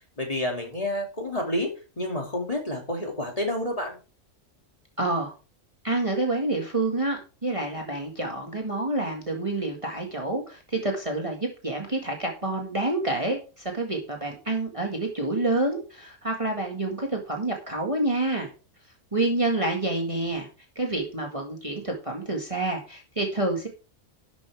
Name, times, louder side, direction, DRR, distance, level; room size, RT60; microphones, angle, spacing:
voice 1, 0.2-1.7 2.0-4.0, left 1 dB, 25° left, 1 dB, 2.9 m, -29 dB
voice 2, 5.0-5.3 5.8-18.5 19.1-20.5 20.8-23.7, right 2 dB, 25° right, 1 dB, 2.0 m, -28 dB
12.5 x 8.0 x 3.5 m, 0.34 s
omnidirectional pair, 1.4 m